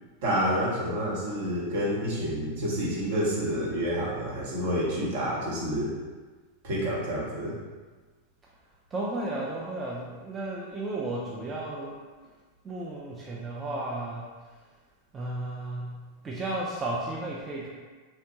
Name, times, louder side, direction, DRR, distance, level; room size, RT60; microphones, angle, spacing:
voice 1, 0.2-5.9 6.6-7.6, equal, 55° right, -5 dB, 0.8 m, -28 dB
voice 2, 8.9-12.0 12.6-14.3 15.1-16.0 16.2-17.7, right 2 dB, 20° right, -5 dB, 0.3 m, -33 dB
2.7 x 2.1 x 2.8 m, 1.4 s
figure-of-eight pair, 90°, 0 cm